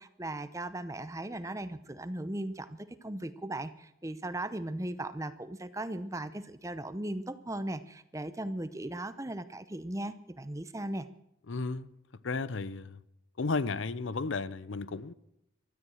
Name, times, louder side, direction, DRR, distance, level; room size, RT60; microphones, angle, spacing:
voice 1, 0.0-11.1, right 1 dB, 15° right, 0.7 m, -37 dB
voice 2, 11.5-11.9 12.2-13.0 13.4-15.1, left 3 dB, 70° left, 0.7 m, -33 dB
16.5 x 13.0 x 6.3 m
head